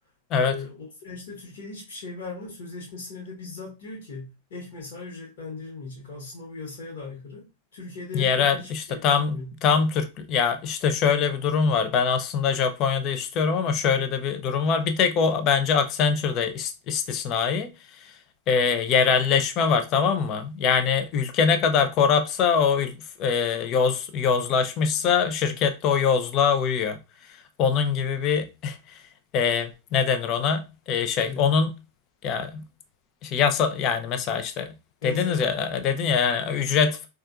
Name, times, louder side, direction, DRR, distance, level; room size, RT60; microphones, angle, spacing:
voice 1, 0.4-7.5 7.7-9.5 31.2-31.6 35.0-35.5, left 4 dB, 55° left, 1.3 m, -38 dB
voice 2, 8.1-17.7 18.0-18.1 18.5-27.0 27.6-29.0 29.3-31.7 32.2-32.6 33.2-34.7 35.0-37.1, left 6 dB, 35° left, 0.5 m, -23 dB
4.3 x 2.4 x 2.4 m
figure-of-eight pair, 90°, 0 cm